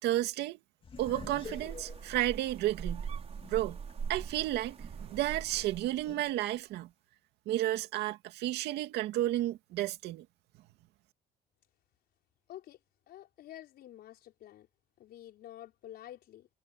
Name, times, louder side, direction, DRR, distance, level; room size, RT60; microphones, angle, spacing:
voice 1, 0.0-0.6 1.0-3.1 3.5-3.8 4.1-6.9 7.5-10.3, right 14 dB, 80° right, 2.3 m, -32 dB
sound 1, 0.8-3.9 4.4-4.5 6.1-6.4, left 5 dB, 30° left, 2.5 m, -48 dB
sound 2, 1.0-6.3, right 6 dB, 35° right, 5.2 m, -42 dB
voice 2, 12.5-12.8 13.1-14.7 15.0-16.5, left 12 dB, 70° left, 5.4 m, -49 dB
cardioid pair, 110°, 17 cm